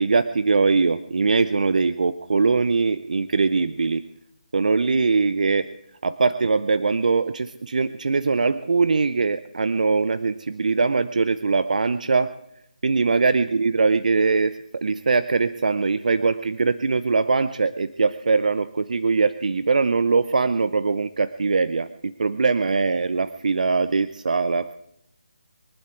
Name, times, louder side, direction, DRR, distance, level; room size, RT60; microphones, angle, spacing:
voice 1, 0.0-4.0 4.5-5.7 6.0-12.3 12.8-24.7, right 4 dB, 65° right, 13 dB, 0.7 m, -22 dB
23.5 x 11.5 x 4.6 m, 0.77 s
figure-of-eight pair, 155°, 4 cm